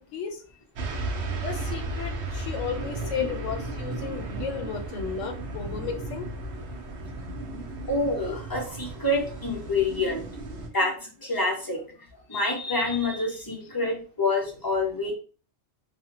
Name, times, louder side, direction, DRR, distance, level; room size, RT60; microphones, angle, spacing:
voice 1, 0.1-0.4 1.4-6.3, left 7 dB, 85° left, 4 dB, 1.0 m, -34 dB
sound 1, 0.7-10.7, right 2 dB, 70° right, 0.9 m, -34 dB
voice 2, 7.9-10.9 11.2-11.8 12.3-15.1, left 2 dB, 35° left, 0 dB, 0.3 m, -27 dB
3.1 x 2.0 x 2.8 m, 0.39 s
omnidirectional pair, 1.3 m